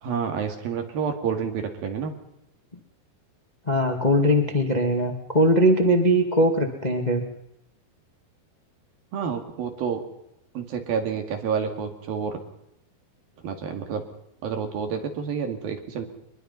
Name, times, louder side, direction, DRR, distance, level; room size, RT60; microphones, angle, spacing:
voice 1, 0.0-2.1 9.1-10.0 10.6-12.4 13.4-14.0 14.4-16.1, right 6 dB, 60° right, 5 dB, 3.9 m, -29 dB
voice 2, 3.7-7.2, equal, 60° left, 3 dB, 0.4 m, -20 dB
23.5 x 22.0 x 5.6 m, 0.78 s
omnidirectional pair, 5.1 m